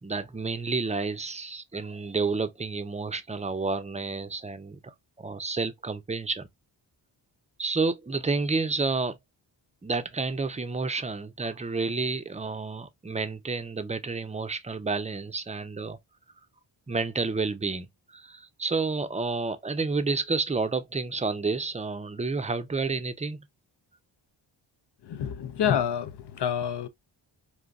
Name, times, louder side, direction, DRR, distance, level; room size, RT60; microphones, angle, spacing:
voice 1, 0.0-6.5 7.6-9.2 9.8-16.0 16.9-23.4, right 4 dB, 15° right, 0.6 m, -30 dB
voice 2, 25.0-26.9, left 8 dB, 55° left, 0.6 m, -28 dB
3.9 x 2.5 x 2.3 m
supercardioid pair, 40°, 49 cm